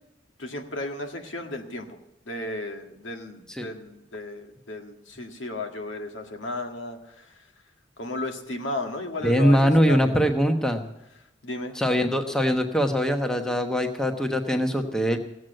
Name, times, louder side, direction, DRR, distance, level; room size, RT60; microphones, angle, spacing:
voice 1, 0.4-1.9 2.3-7.3 8.0-10.1 11.4-11.7, left 2 dB, 85° left, 4 dB, 1.9 m, -34 dB
voice 2, 9.2-10.8 11.7-15.2, equal, 5° left, 4 dB, 1.0 m, -22 dB
17.0 x 7.8 x 7.7 m, 0.88 s
head